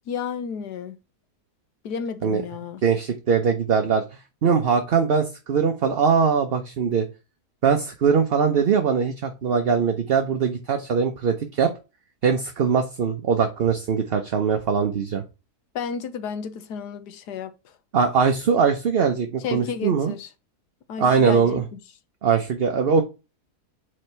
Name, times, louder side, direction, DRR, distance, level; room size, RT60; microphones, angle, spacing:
voice 1, 0.1-1.0 1.8-2.8 15.7-17.7 19.4-20.3 20.9-21.8, left 6 dB, 85° left, 1.4 m, -32 dB
voice 2, 2.8-4.0 4.4-7.0 7.6-11.7 12.2-15.2 17.9-20.1 21.0-21.6 22.2-23.0, right 6 dB, 45° right, 0.8 m, -21 dB
4.8 x 4.4 x 5.5 m
omnidirectional pair, 1.7 m